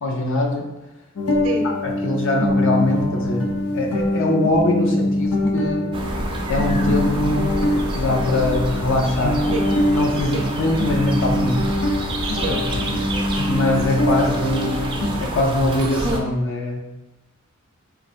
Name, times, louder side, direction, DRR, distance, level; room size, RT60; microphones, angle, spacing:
voice 1, 0.0-0.7 1.8-5.9 6.5-7.4 7.9-9.4 9.9-11.6 12.4-12.5 13.5-16.8, left 2 dB, 60° left, 0 dB, 0.6 m, -22 dB
sound 1, 1.2-15.1, left 1 dB, 90° left, 0.8 m, -23 dB
sound 2, 5.9-16.2, right 1 dB, 25° right, 0.4 m, -27 dB
voice 2, 12.2-12.7, right 3 dB, 65° right, 4 dB, 0.6 m, -28 dB
3.8 x 2.6 x 4.3 m, 1.0 s
head